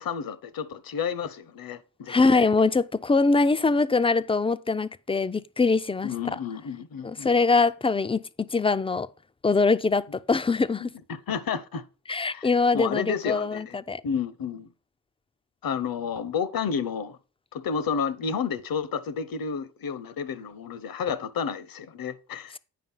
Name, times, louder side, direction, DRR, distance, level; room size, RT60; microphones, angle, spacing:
voice 1, 0.0-2.5 6.0-7.3 11.1-11.8 12.3-12.5 12.7-13.8 14.0-14.7 15.6-17.2 17.5-22.6, left 6 dB, 60° left, 0.9 m, -31 dB
voice 2, 2.1-6.4 7.0-9.1 9.4-10.9 12.1-14.0, left 4 dB, 15° left, 0.4 m, -23 dB
9.3 x 5.2 x 5.5 m
cardioid pair, 105°, 40 cm